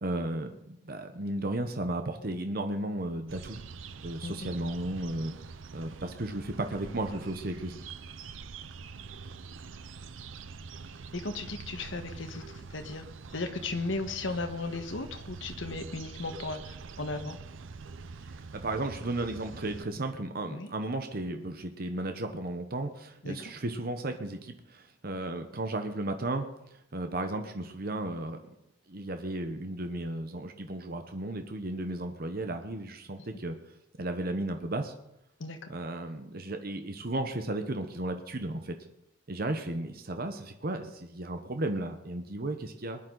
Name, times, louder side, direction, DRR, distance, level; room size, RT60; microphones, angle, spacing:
voice 1, 0.0-3.6 4.0-5.3 5.7-7.8 18.3-26.5 26.9-28.4 28.9-33.6 34.0-34.9 35.7-38.7 39.3-43.0, right 1 dB, 50° right, 6 dB, 1.0 m, -34 dB
sound 1, 3.3-19.8, right 4 dB, 85° right, 0.6 m, -45 dB
voice 2, 11.1-13.0 13.3-17.4 20.5-20.7 23.2-23.3 35.4-35.7, left 3 dB, 75° left, 6 dB, 1.4 m, -36 dB
20.5 x 10.5 x 3.9 m, 0.82 s
head